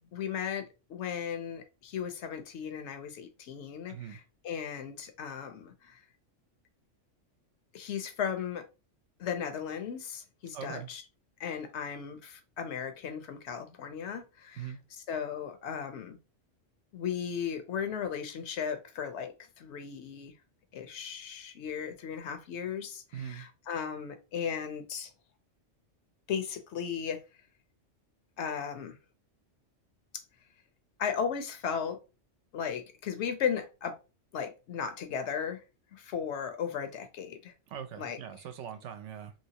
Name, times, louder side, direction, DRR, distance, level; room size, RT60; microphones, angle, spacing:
voice 1, 0.1-6.0 7.7-8.6 9.2-11.0 11.4-14.7 15.1-16.2 16.9-20.3 20.7-25.1 26.3-27.2 28.4-28.9 31.0-32.0 32.5-33.9 34.3-35.6 35.9-37.5 38.0-38.2, left 7 dB, 70° left, 0.9 m, -36 dB
voice 2, 3.9-4.2 10.5-10.9 14.6-14.8 23.1-23.5 37.7-39.3, right 9 dB, 75° right, 0.9 m, -41 dB
3.0 x 2.8 x 2.8 m
omnidirectional pair, 1.3 m